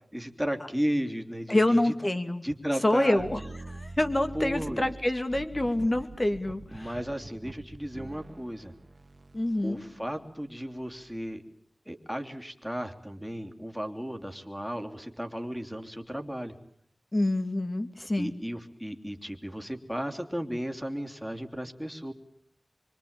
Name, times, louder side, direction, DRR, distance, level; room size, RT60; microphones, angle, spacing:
voice 1, 0.1-1.9 2.4-3.2 4.3-4.9 6.7-8.7 9.6-11.4 11.8-16.5 18.2-22.1, equal, ahead, 6 dB, 3.2 m, -34 dB
voice 2, 1.5-2.4 2.8-3.4 3.7-6.9 9.3-9.8 17.1-18.3, left 1 dB, 35° left, 8 dB, 2.7 m, -26 dB
sound 1, 3.2-11.1, right 2 dB, 55° right, 2.0 m, -45 dB
25.5 x 24.5 x 9.0 m, 0.66 s
wide cardioid pair, 60°, 0 cm